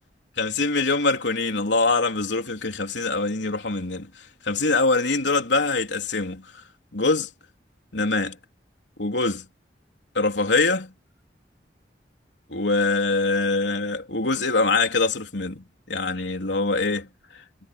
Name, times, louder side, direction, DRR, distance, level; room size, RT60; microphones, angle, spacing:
voice 1, 0.4-4.1 4.4-6.6 6.9-7.3 7.9-8.4 9.0-9.5 10.2-10.9 12.5-17.1 17.3-17.4, left 3 dB, 85° left, 3.5 m, -24 dB
head